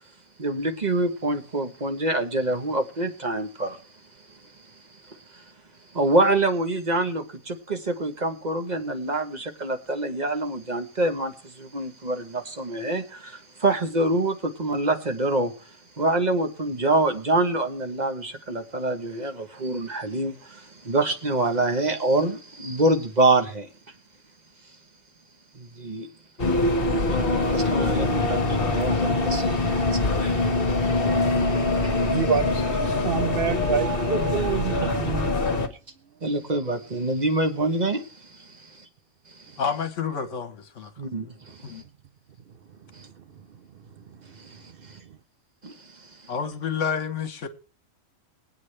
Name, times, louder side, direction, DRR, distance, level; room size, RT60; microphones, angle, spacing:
voice 1, 0.4-3.8 5.1-5.4 5.9-15.5 16.0-23.7 25.5-26.1 27.1-30.2 36.2-38.8 39.3-39.4 41.0-41.8 43.0-43.1 44.4-44.6 44.9-45.0 45.6-45.7 46.0-46.1, right 2 dB, 35° right, 1.1 m, -26 dB
sound 1, 26.4-35.7, left 2 dB, 45° left, 1.4 m, -23 dB
voice 2, 32.1-32.6 33.0-35.7 43.0-43.2 44.1-44.2, right 7 dB, 50° right, 0.8 m, -27 dB
voice 3, 39.6-40.9 41.6-41.8 46.3-47.5, left 6 dB, 65° left, 1.3 m, -29 dB
21.5 x 8.7 x 3.3 m
omnidirectional pair, 1.4 m